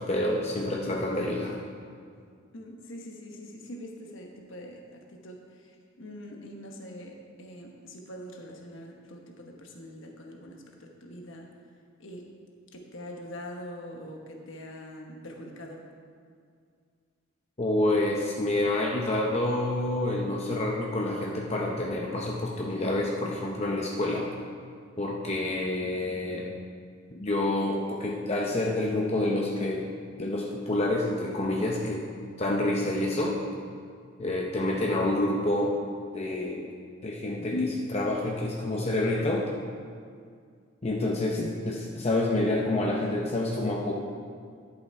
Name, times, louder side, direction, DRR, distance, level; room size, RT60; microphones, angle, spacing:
voice 1, 0.0-1.5 17.6-24.3 25.0-26.5 27.1-29.9 30.2-32.1 32.4-33.4 34.2-35.7 36.1-36.7 37.0-39.5 40.8-43.9, left 1 dB, 30° left, -2 dB, 0.7 m, -28 dB
voice 2, 2.5-11.5 12.0-12.3 12.7-15.9, equal, 65° left, 1 dB, 1.1 m, -44 dB
11.0 x 6.8 x 4.6 m, 2.2 s
head